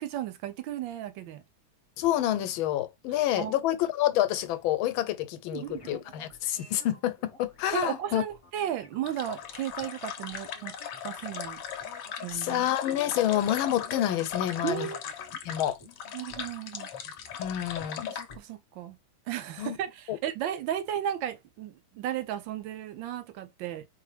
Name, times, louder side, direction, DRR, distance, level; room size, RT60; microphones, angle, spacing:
voice 1, 0.0-1.4 3.4-3.5 5.5-6.0 7.7-10.7 11.0-11.6 12.2-12.7 14.6-15.0 16.1-16.9 18.1-19.0 19.3-23.9, right 11 dB, 80° right, 1.3 m, -34 dB
voice 2, 2.0-8.2 12.3-14.9 15.4-15.8 17.4-18.1 19.6-19.8 20.1-20.2, left 12 dB, 85° left, 1.5 m, -28 dB
sound 1, 5.7-18.4, left 2 dB, 35° left, 0.5 m, -53 dB
sound 2, 9.1-18.3, left 8 dB, 65° left, 1.2 m, -38 dB
4.5 x 2.6 x 3.2 m
omnidirectional pair, 2.2 m